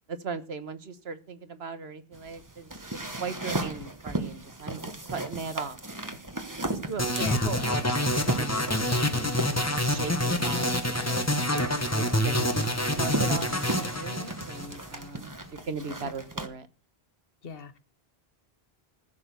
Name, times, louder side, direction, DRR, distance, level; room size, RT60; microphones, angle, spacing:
voice 1, 0.1-5.8 6.7-10.7 11.0-11.3 11.9-15.3 15.7-16.7, right 5 dB, 80° right, 1.6 m, -38 dB
sound 1, 2.1-16.5, right 2 dB, 20° right, 1.3 m, -37 dB
sound 2, 7.0-15.1, left 1 dB, 15° left, 1.2 m, -27 dB
voice 2, 7.2-7.5 17.4-17.8, left 5 dB, 65° left, 1.2 m, -37 dB
15.0 x 6.9 x 6.8 m
omnidirectional pair, 1.0 m